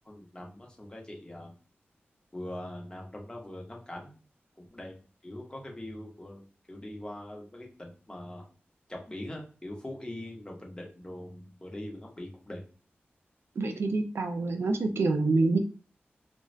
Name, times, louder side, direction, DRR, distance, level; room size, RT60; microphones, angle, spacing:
voice 1, 0.0-1.5 2.3-4.1 4.6-4.9 5.2-8.4 8.9-12.6, left 1 dB, 20° left, -1 dB, 0.9 m, -42 dB
voice 2, 13.6-15.6, right 3 dB, 80° right, 6 dB, 0.4 m, -26 dB
2.5 x 2.3 x 3.2 m, 0.37 s
wide cardioid pair, 70°, 4 cm